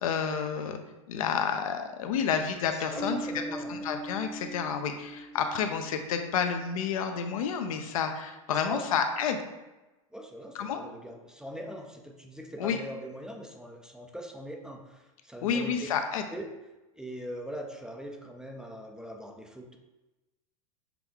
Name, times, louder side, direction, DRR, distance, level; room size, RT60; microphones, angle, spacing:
voice 1, 0.0-0.8 1.1-3.2 3.7-9.4 10.5-10.8 12.6-12.8 15.4-16.2, left 7 dB, 80° left, 6 dB, 0.6 m, -30 dB
voice 2, 2.7-3.9 8.5-9.0 10.1-15.7 16.3-16.4 16.9-19.8, equal, 5° right, 2 dB, 0.4 m, -42 dB
Bass guitar, 2.9-6.4, right 1 dB, 50° right, 1.2 m, -40 dB
5.9 x 2.3 x 3.5 m, 1.1 s
supercardioid pair, 125°, 18 cm